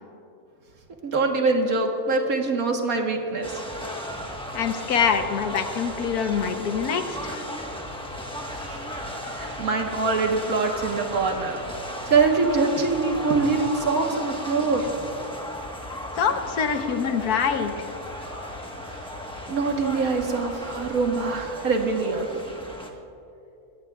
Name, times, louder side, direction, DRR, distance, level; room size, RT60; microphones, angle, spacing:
voice 1, 1.0-3.6 8.5-8.8 9.4-11.6 12.0-14.9 18.9-19.0 19.5-22.3, right 4 dB, 70° right, 2 dB, 1.8 m, -24 dB
sound 1, 3.4-22.9, equal, 5° left, 1.1 m, -35 dB
voice 2, 4.5-7.3 16.2-17.9, left 6 dB, 85° left, 7 dB, 1.5 m, -25 dB
21.0 x 16.5 x 2.4 m, 2.7 s
omnidirectional pair, 1.6 m